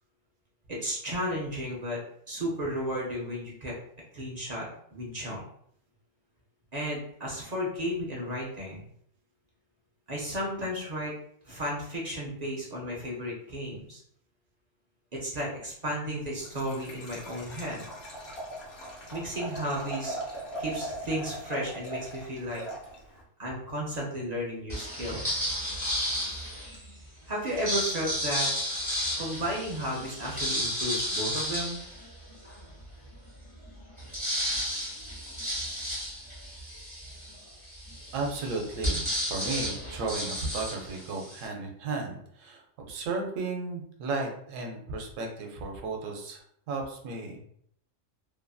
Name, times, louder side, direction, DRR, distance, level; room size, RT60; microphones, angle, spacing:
voice 1, 0.7-2.0 2.3-3.7 4.1-5.4 6.7-8.8 10.1-11.1 11.5-14.0 15.2-17.9 19.1-20.2 20.6-22.6 23.4-25.4 27.3-28.5 29.1-31.8, equal, 45° right, -4 dB, 0.6 m, -33 dB
Liquid, 16.4-23.2, right 1 dB, 60° left, 1.0 m, -39 dB
sound 1, 24.7-26.8 27.4-32.6 33.1-33.2 33.4-41.5, equal, 10° right, 0.9 m, -33 dB
voice 2, 38.1-46.4 46.7-47.4, right 3 dB, 90° right, 2 dB, 1.0 m, -34 dB
2.7 x 2.4 x 2.3 m, 0.67 s
omnidirectional pair, 1.3 m